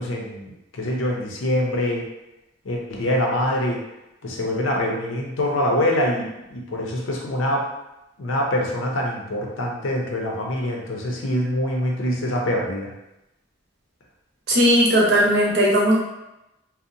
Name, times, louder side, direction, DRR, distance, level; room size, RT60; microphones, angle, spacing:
voice 1, 0.0-2.0 2.6-3.8 4.2-7.6 8.2-12.9, left 1 dB, 90° left, -1 dB, 0.5 m, -24 dB
voice 2, 14.5-15.9, equal, 60° right, -5 dB, 0.7 m, -17 dB
2.7 x 2.0 x 2.5 m, 0.92 s
head